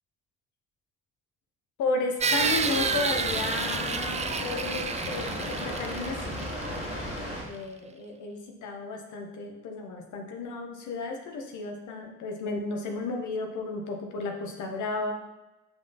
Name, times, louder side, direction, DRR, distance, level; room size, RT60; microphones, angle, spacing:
voice 1, 1.8-6.4 7.4-15.1, left 3 dB, 55° left, 2 dB, 1.4 m, -33 dB
sound 1, 2.2-6.9, right 5 dB, 20° right, 0.6 m, -30 dB
Water, 2.4-7.4, equal, 70° left, 2.7 m, -35 dB
6.5 x 5.9 x 4.1 m, 1.0 s
figure-of-eight pair, 45°, 36 cm